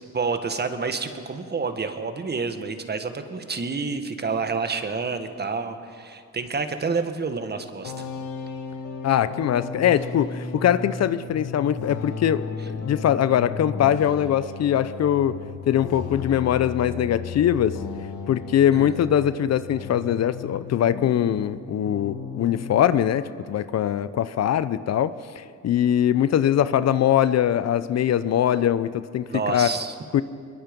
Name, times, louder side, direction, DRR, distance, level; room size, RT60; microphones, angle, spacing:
voice 1, 0.1-8.1 18.7-18.9 29.3-29.9, right 4 dB, 35° right, 8 dB, 1.7 m, -29 dB
sound 1, 7.8-21.6 21.8-23.0, left 5 dB, 80° left, 2.0 m, -35 dB
voice 2, 9.0-15.4 15.7-17.8 18.3-29.7 30.1-30.2, left 10 dB, 60° left, 15 dB, 0.7 m, -22 dB
22.5 x 22.0 x 5.4 m, 2.3 s
cardioid pair, 90°, 30 cm